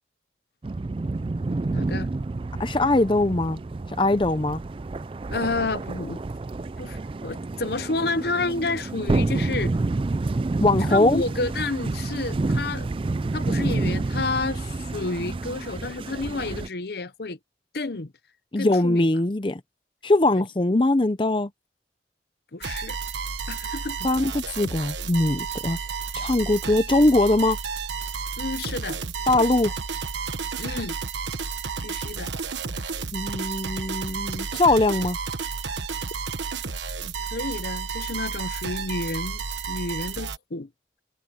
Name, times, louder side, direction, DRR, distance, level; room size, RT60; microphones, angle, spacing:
sound 1, 0.6-16.7, right 2 dB, 30° right, 0.3 m, -29 dB
voice 1, 1.7-2.1 5.3-6.2 6.8-9.7 10.9-12.9 13.3-17.4 17.7-18.1 18.6-19.1 22.5-23.0 23.5-24.0 28.4-29.0 30.6-31.0 31.8-32.3 37.3-40.7, left 3 dB, 60° left, 0.8 m, -30 dB
voice 2, 2.6-3.6 4.0-4.6 10.6-11.2 18.5-19.6 20.0-21.5 24.0-25.8 26.1-27.6 29.3-29.7 33.1-35.2, left 2 dB, 25° left, 0.6 m, -21 dB
sound 2, 22.6-40.4, right 5 dB, 85° right, 1.3 m, -32 dB
head